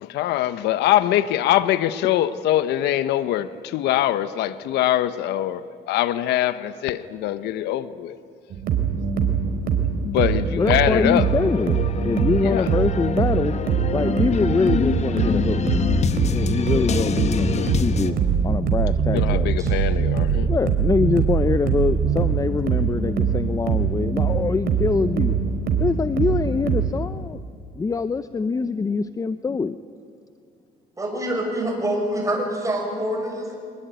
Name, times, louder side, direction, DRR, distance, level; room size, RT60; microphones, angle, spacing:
voice 1, 0.0-8.2 10.0-11.3 12.4-12.7 19.1-20.5, left 13 dB, 80° left, 13 dB, 0.9 m, -23 dB
sound 1, 8.5-26.9, right 6 dB, 65° right, 3.6 m, -23 dB
sound 2, 10.6-18.1, left 7 dB, 40° left, 1.2 m, -27 dB
voice 2, 10.6-13.5 13.9-15.6 16.3-18.2 18.4-19.5 20.4-25.3 25.8-27.4 27.8-29.8, left 4 dB, 20° left, 12 dB, 0.6 m, -24 dB
voice 3, 31.0-33.6, right 1 dB, 20° right, 2 dB, 6.7 m, -26 dB
24.0 x 20.5 x 9.3 m, 2.4 s
cardioid pair, 110°, 17 cm